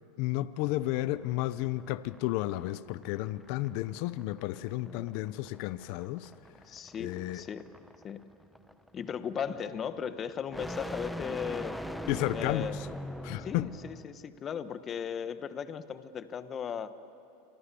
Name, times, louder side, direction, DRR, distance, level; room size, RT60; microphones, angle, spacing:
voice 1, 0.2-6.3 7.0-7.4 12.1-12.9 13.2-13.7, left 16 dB, 60° left, 0.7 m, -32 dB
sound 1, 0.6-14.1, equal, ahead, 1.1 m, -43 dB
voice 2, 4.8-5.1 6.7-7.7 8.0-8.2 8.9-11.8 12.3-12.8 13.4-16.9, left 7 dB, 30° left, 1.2 m, -37 dB
28.0 x 24.5 x 7.0 m
hypercardioid pair, 110°, 0 cm